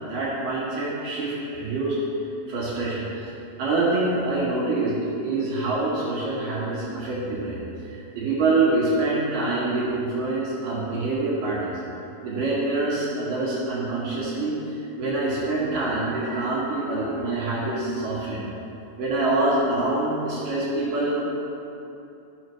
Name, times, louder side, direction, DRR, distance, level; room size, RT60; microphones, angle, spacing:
voice 1, 0.1-2.0 2.5-3.3 3.6-7.6 7.9-11.7 12.2-18.4 19.0-21.2, right 2 dB, 70° right, -8 dB, 3.0 m, -25 dB
13.5 x 6.5 x 3.1 m, 2.7 s
omnidirectional pair, 4.1 m